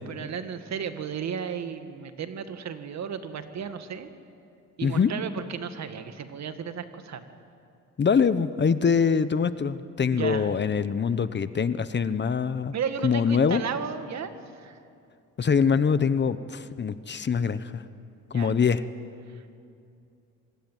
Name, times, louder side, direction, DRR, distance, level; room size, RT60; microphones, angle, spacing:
voice 1, 0.1-4.1 4.8-7.2 10.1-10.5 12.7-14.8 18.3-18.5 19.3-19.5, right 7 dB, 60° right, 8 dB, 1.9 m, -34 dB
voice 2, 4.8-5.1 8.0-12.7 13.0-13.6 15.4-17.8 18.3-18.8, left 6 dB, 35° left, 13 dB, 1.0 m, -24 dB
26.0 x 19.5 x 9.3 m, 2.5 s
cardioid pair, 90°, 30 cm